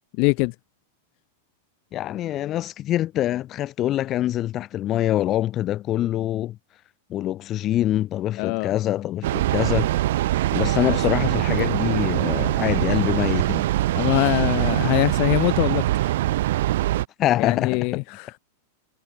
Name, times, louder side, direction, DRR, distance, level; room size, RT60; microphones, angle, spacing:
voice 1, 0.2-0.5 8.4-8.8 10.9-11.0 13.9-16.1 17.4-18.3, left 35 dB, 50° left, 1.8 m, -23 dB
voice 2, 1.9-6.6 7.1-9.9 10.5-13.7 17.2-18.0, left 13 dB, 35° left, 2.1 m, -25 dB
Train, 9.2-17.0, right 15 dB, 70° right, 4.1 m, -23 dB
hypercardioid pair, 115°, 0 cm